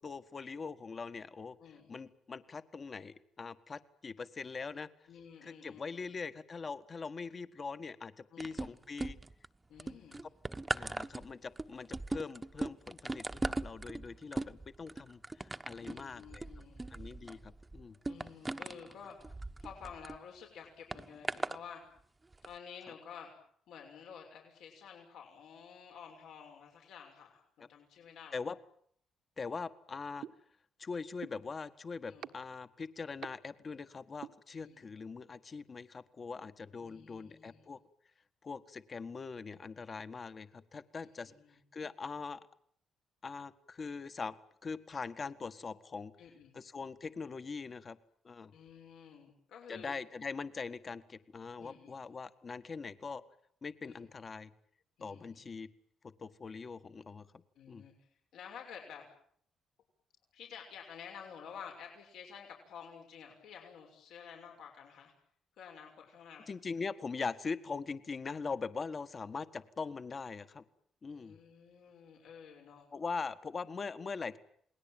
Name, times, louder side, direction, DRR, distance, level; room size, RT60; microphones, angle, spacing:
voice 1, 0.0-1.6 1.9-4.9 5.4-9.2 10.7-16.5 16.9-18.0 28.3-28.6 29.4-30.3 30.8-37.8 38.4-41.3 41.7-42.4 43.2-44.4 44.6-46.1 46.5-48.0 48.2-48.5 49.7-53.2 53.6-54.5 55.0-55.7 56.0-57.3 57.7-57.8 66.5-70.6 71.0-71.4 72.9-74.4, left 4 dB, 40° left, 12 dB, 1.6 m, -42 dB
voice 2, 1.6-1.9 5.1-6.0 8.3-8.8 9.7-10.2 15.8-16.9 18.1-19.2 19.6-21.8 22.4-23.3 23.7-28.4 32.1-32.3 34.5-34.9 36.8-37.7 41.2-41.6 46.2-46.6 48.5-49.9 51.6-52.0 53.8-54.1 55.0-55.4 57.5-59.1 60.3-65.1 65.6-66.5 71.1-72.9, left 7 dB, 80° left, 2 dB, 6.3 m, -51 dB
sound 1, 8.4-9.5 9.8-20.2 20.9-21.6 22.3-22.5, right 2 dB, 20° right, 1.1 m, -39 dB
sound 2, 30.2-30.3 31.2-31.3 32.2-32.3 33.2-33.3 34.2-34.3, right 9 dB, 70° right, 1.4 m, -41 dB
28.5 x 20.0 x 9.1 m, 0.66 s
cardioid pair, 90°, 0 cm